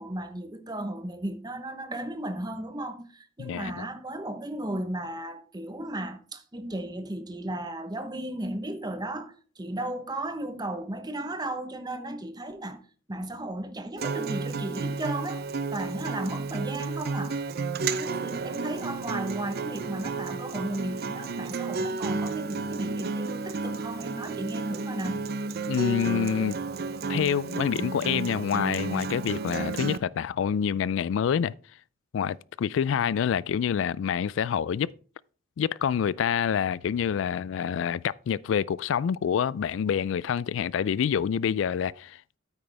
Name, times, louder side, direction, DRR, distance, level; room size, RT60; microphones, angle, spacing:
voice 1, 0.0-12.8 13.1-15.4 15.7-17.3 17.9-25.2, right 1 dB, 20° right, 0.9 m, -35 dB
voice 2, 3.4-3.9 25.7-26.6 27.1-31.5 32.1-34.9 35.6-42.4, left 8 dB, 70° left, 0.3 m, -27 dB
Acoustic guitar, 14.0-30.0, right 4 dB, 50° right, 0.5 m, -32 dB
9.1 x 8.7 x 3.4 m
head